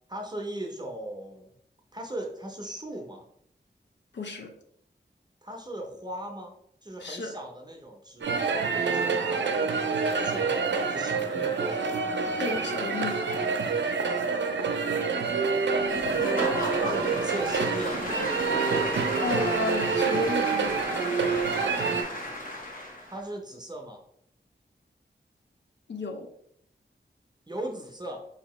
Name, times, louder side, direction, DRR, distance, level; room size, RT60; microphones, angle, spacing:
voice 1, 0.1-1.5 1.9-3.2 5.4-6.5 6.8-9.7 10.1-11.9 16.8-18.2 23.1-24.0 27.5-28.3, right 1 dB, 20° right, 1 dB, 0.6 m, -38 dB
voice 2, 4.1-4.5 7.0-7.3 12.4-13.4 19.2-20.8 25.9-26.3, left 3 dB, 70° left, 3 dB, 0.5 m, -33 dB
sound 1, 8.2-22.0, right 5 dB, 75° right, 0.5 m, -27 dB
Applause / Crowd, 15.8-23.2, left 1 dB, 45° left, 0.9 m, -34 dB
4.2 x 2.7 x 3.0 m, 0.69 s
wide cardioid pair, 85°, 19 cm